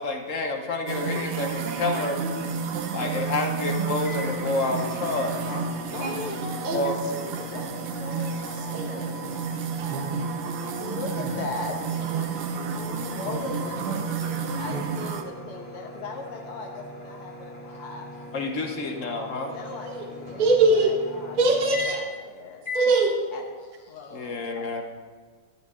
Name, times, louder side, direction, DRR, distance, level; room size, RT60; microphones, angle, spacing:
voice 1, 0.0-2.2 2.9-5.4 6.7-7.0 18.3-19.5 24.1-24.8, left 3 dB, 50° left, 4 dB, 1.0 m, -29 dB
sound 1, 0.9-15.2, right 5 dB, 85° right, 1.9 m, -31 dB
sound 2, 4.0-22.2 22.6-23.0, left 1 dB, 30° left, 2.1 m, -41 dB
voice 2, 5.5-9.5 9.9-10.0 10.8-12.3 12.8-18.1 19.5-21.4 21.7-22.7 23.3-24.5, left 3 dB, 85° left, 0 dB, 2.3 m, -39 dB
voice 3, 19.6-20.1 20.4-20.9 21.4-22.0 22.7-23.1, right 3 dB, 25° right, 0 dB, 1.1 m, -21 dB
13.5 x 12.0 x 3.6 m, 1.6 s
omnidirectional pair, 2.4 m